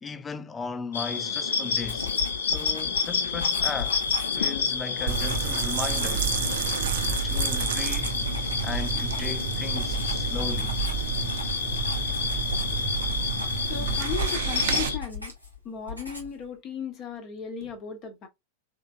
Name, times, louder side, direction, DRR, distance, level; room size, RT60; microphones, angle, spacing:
voice 1, 0.0-2.1 2.4-4.0 4.4-6.3 7.2-8.1 8.6-10.8, left 5 dB, 15° left, 0.5 m, -36 dB
sound 1, 0.9-15.0, left 6 dB, 65° left, 0.6 m, -29 dB
Writing, 1.8-15.6 15.9-16.4, left 5 dB, 90° left, 1.2 m, -38 dB
sound 2, 5.1-14.9, right 7 dB, 55° right, 0.7 m, -30 dB
voice 2, 13.7-15.3 15.6-18.3, left 7 dB, 35° left, 0.9 m, -36 dB
3.7 x 3.3 x 2.3 m
figure-of-eight pair, 90°, 0 cm